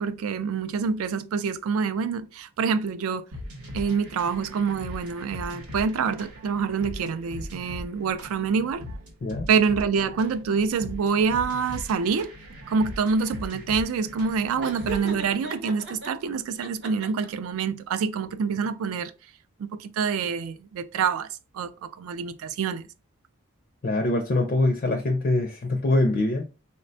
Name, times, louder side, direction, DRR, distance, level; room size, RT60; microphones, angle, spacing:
voice 1, 0.0-3.3 3.7-8.8 9.5-12.3 12.7-19.1 19.6-21.3 21.5-22.8, right 5 dB, 70° right, 0.3 m, -26 dB
sound 1, 3.3-15.3, left 1 dB, 85° right, 0.9 m, -40 dB
Laughter, 14.6-16.1 16.6-17.5, right 2 dB, 50° right, 0.7 m, -36 dB
voice 2, 23.8-26.5, left 2 dB, 40° left, 0.4 m, -24 dB
4.1 x 2.1 x 2.6 m
head